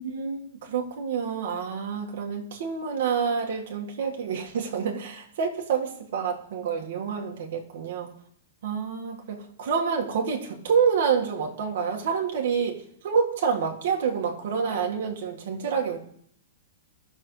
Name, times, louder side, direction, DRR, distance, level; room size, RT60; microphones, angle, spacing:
voice 1, 0.0-8.1 8.6-16.0, right 6 dB, 55° right, 1 dB, 1.8 m, -28 dB
17.0 x 6.7 x 3.3 m, 0.68 s
hypercardioid pair, 170°, 0 cm